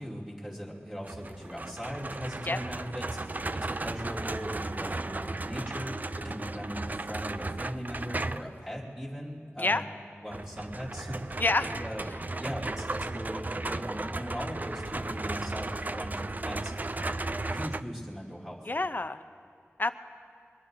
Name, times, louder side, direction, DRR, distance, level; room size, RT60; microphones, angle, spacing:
voice 1, 0.0-9.9 10.2-11.4 11.8-12.0 12.4-16.9 17.5-18.6, equal, 15° right, -6 dB, 2.9 m, -39 dB
sound 1, 1.0-8.6 10.3-17.8, right 2 dB, 35° right, 0.4 m, -35 dB
voice 2, 11.4-11.7 18.7-19.2 19.8-19.9, left 2 dB, 45° left, 11 dB, 0.6 m, -27 dB
23.5 x 20.5 x 2.7 m, 2.3 s
wide cardioid pair, 65°, 5 cm